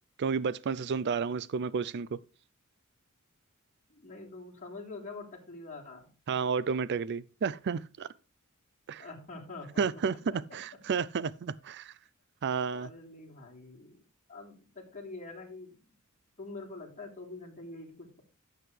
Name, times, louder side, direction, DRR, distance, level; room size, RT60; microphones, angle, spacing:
voice 1, 0.2-2.2 6.3-8.1 8.9-9.0 9.8-11.9 12.4-12.9, right 5 dB, 50° right, 0.4 m, -31 dB
voice 2, 3.9-6.1 9.0-9.8 10.5-10.6 12.7-14.0 14.3-15.8 16.4-18.2, left 3 dB, 35° left, 3.5 m, -45 dB
13.5 x 7.9 x 3.3 m
head